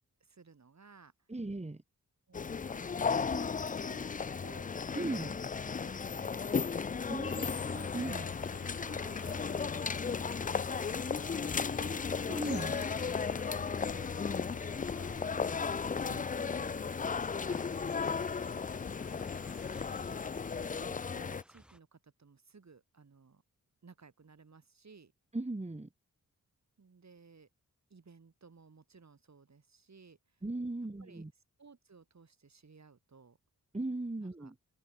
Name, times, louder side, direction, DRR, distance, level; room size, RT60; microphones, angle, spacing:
voice 1, 0.2-1.1 2.3-4.7 5.1-5.4 5.8-6.6 7.3-7.5 8.1-12.1 13.3-18.3 20.1-20.3 20.6-23.4 23.8-25.1 26.8-27.5 27.9-30.4 31.0-31.3 31.6-33.4 34.2-34.5, right 4 dB, 50° right, 5.5 m, -58 dB
voice 2, 1.3-1.8 4.9-5.3 7.1-8.3 12.3-12.8 25.3-25.9 30.4-31.3 33.7-34.5, right 2 dB, 20° right, 2.5 m, -37 dB
sound 1, 2.3-21.4, left 5 dB, 25° left, 0.4 m, -35 dB
sound 2, 7.2-20.7, left 5 dB, 45° left, 1.6 m, -46 dB
sound 3, 7.6-21.8, equal, 5° right, 4.4 m, -60 dB
open air
wide cardioid pair, 80°, 34 cm